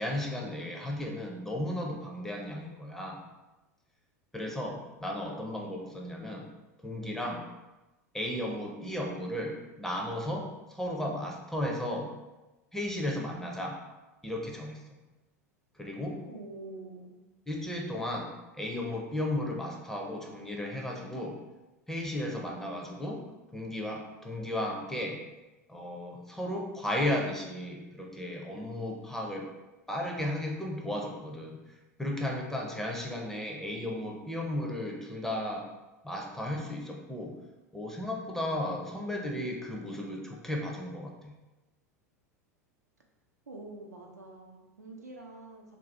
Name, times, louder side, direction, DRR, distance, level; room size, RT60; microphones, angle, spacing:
voice 1, 0.0-3.2 4.3-6.5 6.8-7.5 8.1-12.1 12.7-13.8 14.2-15.0 15.7-16.2 17.5-21.4 21.9-23.2 23.5-25.2 25.7-29.5 29.9-31.6 32.0-35.7 36.0-37.3 37.7-41.3, left 1 dB, 5° left, 0 dB, 0.5 m, -35 dB
voice 2, 16.2-17.2 43.5-45.6, right 2 dB, 85° right, 0 dB, 0.5 m, -46 dB
2.6 x 2.3 x 3.3 m, 1.1 s
figure-of-eight pair, 85°, 9 cm